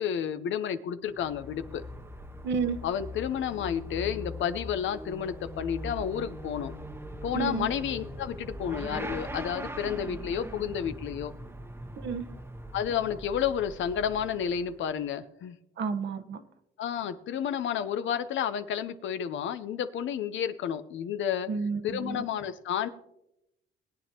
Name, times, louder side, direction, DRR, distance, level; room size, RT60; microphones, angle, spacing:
voice 1, 0.0-1.8 2.8-6.7 7.2-11.3 12.7-15.6 16.8-21.5 21.8-22.9, left 8 dB, 70° left, 11 dB, 0.8 m, -31 dB
Motorcycle / Accelerating revving vroom, 1.1-14.9, equal, 10° right, 1.0 m, -41 dB
voice 2, 2.4-2.8 7.3-7.7 12.0-12.3 15.8-16.4 21.5-22.2, right 5 dB, 65° right, 9 dB, 1.1 m, -31 dB
20.0 x 9.2 x 2.9 m, 0.84 s
cardioid pair, 90°, 20 cm